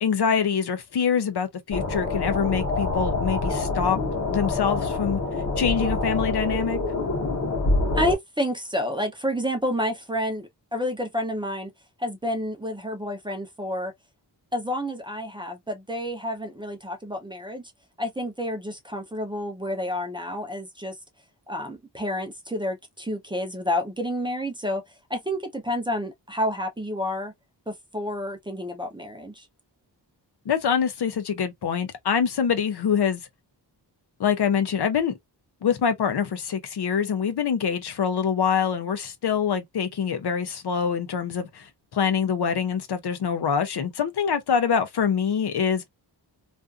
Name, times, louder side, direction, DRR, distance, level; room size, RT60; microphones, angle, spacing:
voice 1, 0.0-4.0 4.3-5.2 5.6-6.8 30.5-33.2 34.2-35.1 35.6-45.9, left 7 dB, 65° left, 0.6 m, -25 dB
sound 1, 1.7-8.2, left 2 dB, 40° left, 1.0 m, -26 dB
voice 2, 7.9-11.7 12.0-13.9 14.5-17.7 18.0-21.0 21.5-24.8 25.1-27.3 27.7-29.5, left 1 dB, 10° right, 0.6 m, -29 dB
2.5 x 2.4 x 2.3 m
wide cardioid pair, 150°, 43 cm